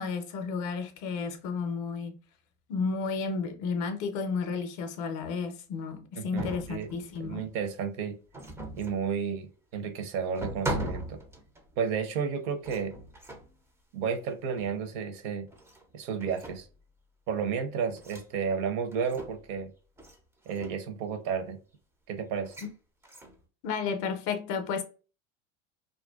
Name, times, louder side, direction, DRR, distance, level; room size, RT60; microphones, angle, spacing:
voice 1, 0.0-2.2 2.7-7.5 23.6-24.8, left 5 dB, 50° left, 0.6 m, -32 dB
voice 2, 6.2-6.9 7.2-8.2 8.8-11.2 11.8-12.9 13.9-15.5 15.9-16.7 17.3-19.7 20.5-21.6 22.1-22.5, right 6 dB, 60° right, 0.7 m, -32 dB
sound 1, 6.4-7.5 8.3-9.1 9.8-9.9 10.3-11.8 12.6-13.6 14.6-14.8 15.5-15.9 16.2-16.8 18.0-18.3 18.9-19.6 20.0-20.2 20.4-20.8 22.4-22.7 23.0-23.4, right 1 dB, 10° right, 0.3 m, -39 dB
2.5 x 2.1 x 2.3 m
supercardioid pair, 105°, 38 cm